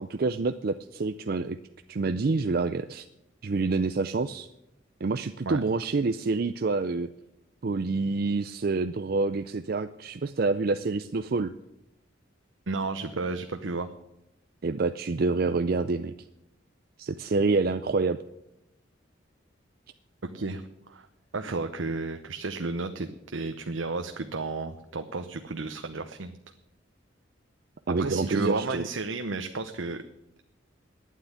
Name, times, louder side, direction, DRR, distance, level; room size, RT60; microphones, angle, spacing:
voice 1, 0.0-1.6 1.9-3.0 3.4-4.5 5.0-7.1 7.6-11.5 14.6-16.1 17.0-18.2 27.9-28.9, right 3 dB, 50° right, 10 dB, 0.5 m, -27 dB
voice 2, 12.7-13.9 20.3-20.6 20.9-21.1 21.3-26.4 28.0-30.0, right 3 dB, 85° right, 7 dB, 0.8 m, -32 dB
11.5 x 9.5 x 10.0 m, 0.88 s
head